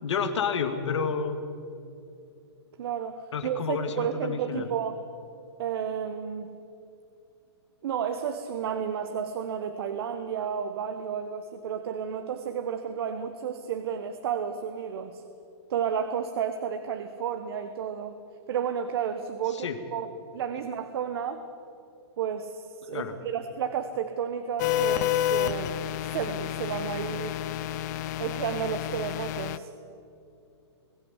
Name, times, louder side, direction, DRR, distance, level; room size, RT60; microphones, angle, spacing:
voice 1, 0.0-1.4 3.3-4.7 19.5-19.8 22.9-23.1, left 6 dB, 80° left, 8 dB, 2.3 m, -30 dB
voice 2, 2.8-4.9 5.6-6.5 7.8-15.2 15.7-18.2 18.5-20.1 20.3-21.4 22.2-27.4 28.2-29.7, right 8 dB, 60° right, 7 dB, 1.4 m, -32 dB
sound 1, 24.6-29.6, left 13 dB, 40° left, 0.7 m, -30 dB
21.5 x 13.5 x 9.9 m, 2.7 s
hypercardioid pair, 155°, 15 cm